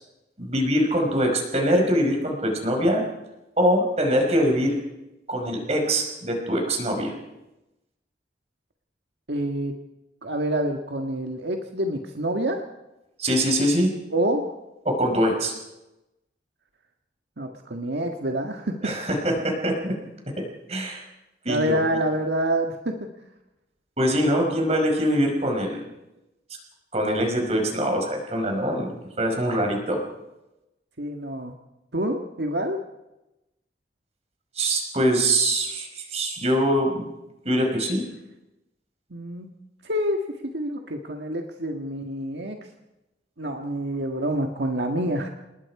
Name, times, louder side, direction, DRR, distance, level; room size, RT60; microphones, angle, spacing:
voice 1, 0.4-3.0 3.6-4.8 5.3-7.1 13.2-13.9 14.9-15.5 18.8-19.9 20.7-21.0 21.5-21.8 24.0-25.8 26.9-30.0 34.6-37.1 37.5-38.0, equal, 40° right, 2 dB, 5.2 m, -23 dB
voice 2, 9.3-9.8 10.2-12.6 14.1-14.4 17.4-18.9 21.5-23.0 31.0-31.5 31.9-32.8 39.1-39.5 39.8-42.6 43.4-45.3, right 1 dB, 80° right, 3 dB, 1.7 m, -27 dB
28.5 x 20.0 x 4.9 m, 0.96 s
head